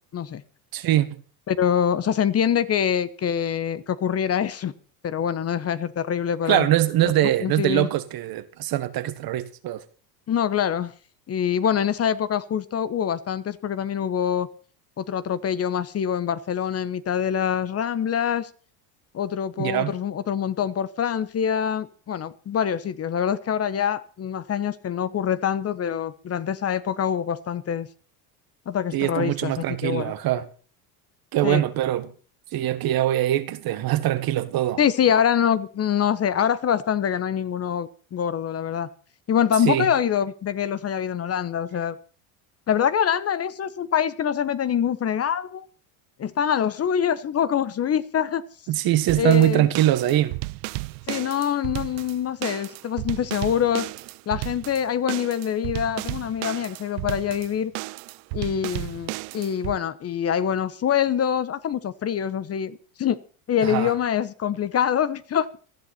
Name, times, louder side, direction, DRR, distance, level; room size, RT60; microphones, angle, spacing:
voice 1, 0.7-1.1 6.5-9.8 19.6-19.9 28.9-30.5 31.3-32.1 32.5-34.8 39.6-39.9 48.7-50.4 63.6-63.9, right 13 dB, 50° right, 1.7 m, -22 dB
voice 2, 1.5-4.7 5.0-6.7 7.4-7.9 10.3-10.9 11.3-14.5 15.0-18.5 19.1-27.9 28.7-29.5 29.8-30.1 31.4-31.6 34.8-38.9 39.3-41.9 42.7-45.7 46.2-48.4 49.2-49.7 51.1-53.9 54.3-57.7 58.3-63.2 63.5-65.5, left 8 dB, 30° left, 1.1 m, -25 dB
sound 1, 49.1-59.8, right 25 dB, 70° right, 0.6 m, -34 dB
19.0 x 13.0 x 4.3 m
supercardioid pair, 115°, 46 cm